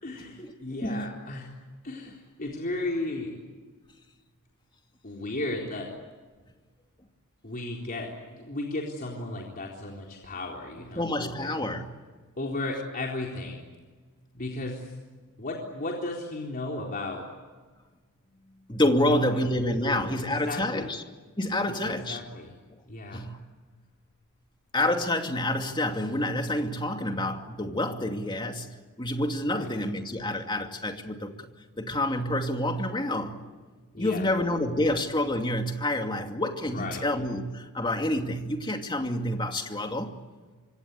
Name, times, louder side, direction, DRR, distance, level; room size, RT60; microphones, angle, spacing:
voice 1, 0.0-1.5 1.8-3.3 5.0-5.9 7.4-11.6 12.4-13.6 14.3-14.9 15.4-17.3 19.1-19.4 19.7-20.0 20.5-20.9 21.7-21.8 22.1-22.5 22.9-23.2 29.5-29.7 33.9-34.3 36.7-37.0, left 2 dB, 40° left, 3.9 m, -35 dB
voice 2, 11.0-11.9 18.7-21.0 21.4-22.2 23.1-23.4 24.7-28.7 29.0-31.5 31.8-33.4 34.0-40.2, left 1 dB, 20° left, 2.5 m, -28 dB
26.5 x 25.5 x 8.3 m
head